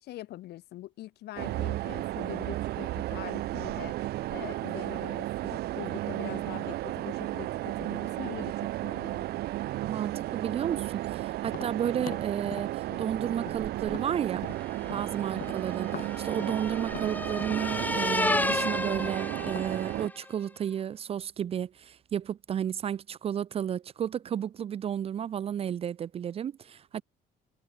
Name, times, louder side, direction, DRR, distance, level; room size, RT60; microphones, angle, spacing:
voice 1, 0.0-3.9 4.3-9.3, left 15 dB, 75° left, 2.3 m, -43 dB
sound 1, 1.4-20.1, right 16 dB, 70° right, 0.8 m, -34 dB
voice 2, 9.8-14.5 14.9-27.0, right 9 dB, 35° right, 0.4 m, -33 dB
Tap, 11.4-15.1 15.3-19.7, left 10 dB, 55° left, 4.7 m, -44 dB
sound 2, 14.7-20.2, left 2 dB, 10° left, 0.8 m, -32 dB
cardioid pair, 110°, 17 cm